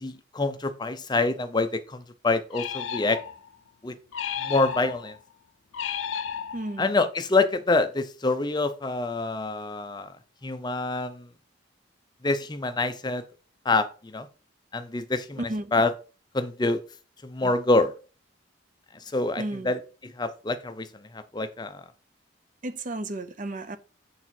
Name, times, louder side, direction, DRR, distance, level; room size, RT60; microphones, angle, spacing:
voice 1, 0.0-3.2 3.8-4.0 4.4-5.2 6.8-10.1 10.4-11.3 12.2-13.2 13.6-14.3 14.7-15.9 16.3-16.8 17.2-17.9 19.1-20.9 21.1-21.8, left 3 dB, 20° left, 0.5 m, -26 dB
sound 1, 2.5-3.5 4.1-5.2 5.7-6.9, left 8 dB, 80° left, 0.5 m, -33 dB
voice 2, 6.5-6.8 15.5-15.7 19.4-19.7 22.6-23.8, right 1 dB, 40° right, 0.6 m, -33 dB
7.1 x 4.2 x 4.5 m
head